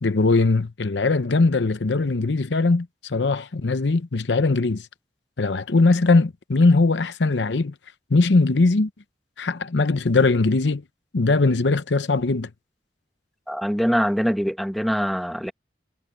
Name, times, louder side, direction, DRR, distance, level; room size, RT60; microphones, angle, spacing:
voice 1, 0.0-4.9 5.4-7.7 8.1-8.9 9.4-10.8 11.1-12.5, left 3 dB, 85° left, 0.8 m, -20 dB
voice 2, 13.5-15.5, equal, ahead, 1.1 m, -23 dB
head